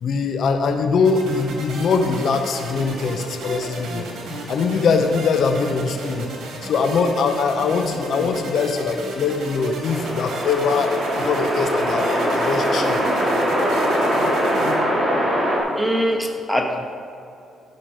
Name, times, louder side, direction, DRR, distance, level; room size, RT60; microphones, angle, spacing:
voice 1, 0.0-4.1 4.5-6.3 6.6-13.0, left 5 dB, 65° left, 6 dB, 0.8 m, -22 dB
sound 1, 1.0-14.7, right 1 dB, 75° right, 2.2 m, -33 dB
sound 2, 9.8-15.6, equal, 15° right, 2.7 m, -22 dB
voice 2, 15.7-16.9, equal, ahead, 2 dB, 1.2 m, -22 dB
13.0 x 5.8 x 4.9 m, 2.6 s
cardioid pair, 90°, 0 cm